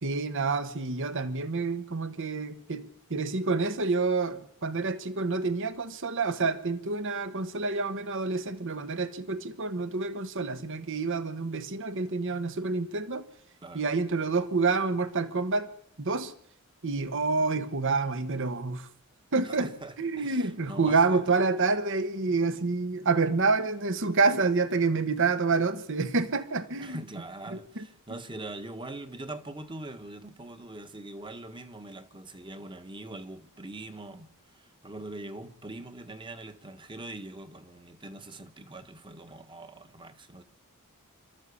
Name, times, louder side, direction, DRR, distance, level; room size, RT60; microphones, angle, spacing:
voice 1, 0.0-13.2 13.7-15.7 16.0-16.3 16.8-18.9 19.3-19.7 20.0-27.0 27.5-27.9, right 4 dB, 60° right, 1.2 m, -28 dB
voice 2, 19.4-21.3 26.8-40.4, right 2 dB, 20° right, 1.4 m, -42 dB
27.0 x 13.0 x 8.4 m
head